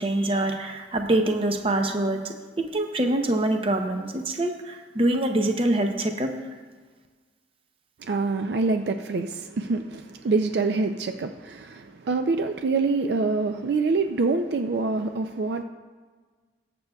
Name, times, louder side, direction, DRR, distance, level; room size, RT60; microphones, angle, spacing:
voice 1, 0.0-6.3, right 1 dB, 30° right, 0.7 m, -25 dB
voice 2, 8.0-15.6, right 3 dB, 60° right, 0.4 m, -26 dB
20.5 x 6.8 x 2.3 m
head